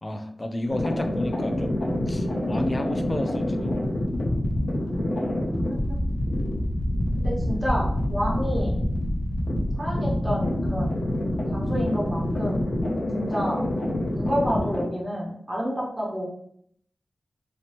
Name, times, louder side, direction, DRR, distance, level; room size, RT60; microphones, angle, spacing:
voice 1, 0.0-3.8, left 1 dB, 30° left, 5 dB, 0.3 m, -32 dB
sound 1, 0.7-14.8, left 1 dB, 85° left, 0.5 m, -26 dB
voice 2, 5.7-6.0 6.3-6.4 7.1-8.8 9.8-11.0 11.5-12.6 13.1-13.7 14.1-16.2, equal, 20° right, -5 dB, 1.0 m, -29 dB
2.9 x 2.1 x 2.7 m, 0.66 s
wide cardioid pair, 115°, 0 cm